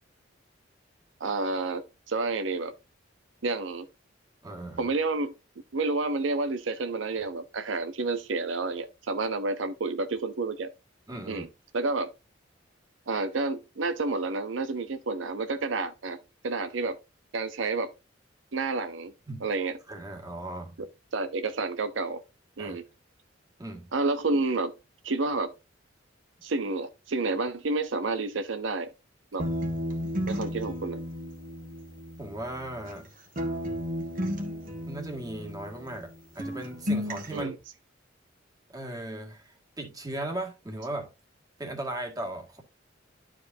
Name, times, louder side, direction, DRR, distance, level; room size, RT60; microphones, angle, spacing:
voice 1, 1.2-2.7 3.4-3.9 4.8-5.3 5.7-10.7 11.3-11.5 11.7-12.1 13.1-16.2 16.4-17.0 17.3-17.9 18.5-19.1 19.4-19.8 20.8-20.9 21.1-22.2 22.6-22.9 23.9-24.7 25.0-25.5 26.4-28.9 29.3-29.5 30.3-31.0 37.3-37.6, right 3 dB, 75° right, 0.7 m, -29 dB
voice 2, 4.4-4.9 11.1-11.5 19.3-19.5 19.9-20.8 22.6-22.8 23.6-23.9 32.2-33.1 34.9-37.5 38.7-41.1 41.6-42.6, right 1 dB, 20° right, 1.9 m, -37 dB
sound 1, 29.4-33.1 33.4-36.1 36.4-37.4, equal, 45° right, 1.6 m, -33 dB
11.5 x 4.9 x 2.6 m
head